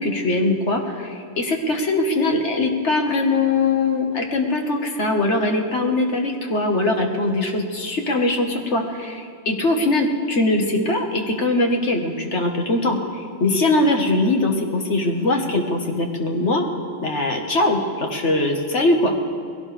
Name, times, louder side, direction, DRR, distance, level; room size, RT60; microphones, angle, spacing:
voice 1, 0.0-16.7 17.0-19.2, left 2 dB, 75° left, 2 dB, 1.9 m, -21 dB
21.0 x 17.0 x 3.5 m, 2.4 s
omnidirectional pair, 1.2 m